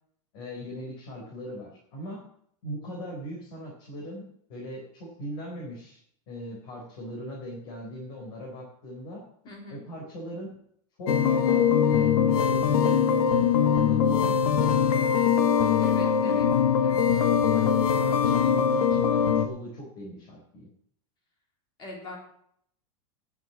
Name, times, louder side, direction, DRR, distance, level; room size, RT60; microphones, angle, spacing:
voice 1, 0.3-2.3 2.6-6.0 6.3-9.2 9.7-10.5 11.0-14.9 16.2-16.4 17.1-20.7, equal, 50° left, -2 dB, 4.1 m, -40 dB
voice 2, 9.4-9.8 15.8-16.5 16.8-17.1 21.8-22.2, left 1 dB, 25° left, 0 dB, 3.6 m, -42 dB
sound 1, 11.1-19.5, left 7 dB, 85° left, 1.4 m, -22 dB
10.0 x 7.2 x 8.2 m, 0.68 s
supercardioid pair, 170°, 18 cm